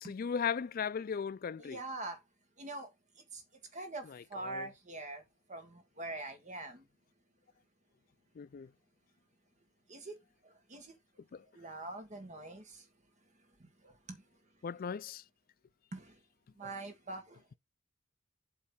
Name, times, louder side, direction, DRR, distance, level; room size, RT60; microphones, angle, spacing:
voice 1, 0.0-1.8 4.5-4.7 8.4-8.7 11.3-11.4 14.6-15.2, left 7 dB, 50° left, 0.4 m, -36 dB
voice 2, 1.6-2.2 2.6-2.9 3.3-3.4 3.7-5.2 5.5-6.9 9.9-10.2 10.4-10.9 11.5-12.9 13.6-14.2 15.9-16.2 16.6-17.4, right 2 dB, 40° right, 1.6 m, -44 dB
8.5 x 3.2 x 6.0 m
head